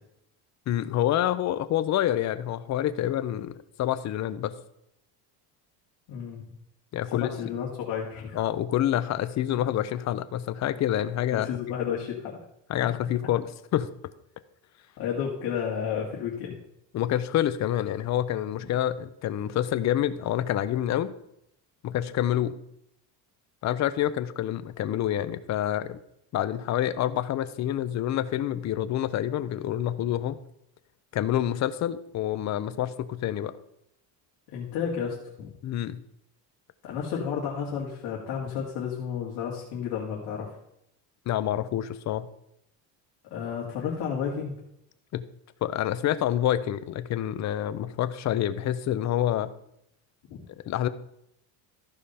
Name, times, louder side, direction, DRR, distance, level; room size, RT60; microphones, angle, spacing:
voice 1, 0.7-4.5 6.9-7.5 8.3-11.5 12.7-13.9 16.9-21.1 21.8-22.6 23.6-26.0 26.3-30.4 31.1-33.5 35.6-36.0 41.3-42.3 45.1-45.2 45.6-49.5 50.7-50.9, left 11 dB, 40° left, 13 dB, 0.7 m, -27 dB
voice 2, 6.1-6.4 7.1-8.4 11.3-12.4 15.0-16.6 34.5-35.5 36.8-40.6 43.3-44.5 50.3-50.4, left 7 dB, 60° left, -4 dB, 2.2 m, -32 dB
14.0 x 5.0 x 5.5 m, 0.77 s
cardioid pair, 145°, 43 cm